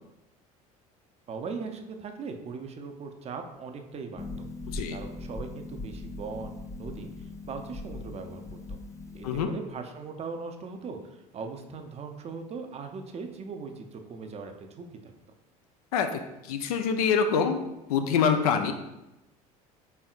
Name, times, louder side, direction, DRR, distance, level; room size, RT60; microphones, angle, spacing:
voice 1, 1.3-4.5 4.9-8.8 9.1-15.1, right 4 dB, 35° right, 5 dB, 0.5 m, -39 dB
Harp, 4.2-9.4, left 2 dB, 15° left, 0.4 m, -40 dB
voice 2, 16.5-17.6 17.9-18.7, left 6 dB, 80° left, 7 dB, 0.4 m, -25 dB
4.3 x 3.4 x 2.4 m, 0.93 s
hypercardioid pair, 70°, 19 cm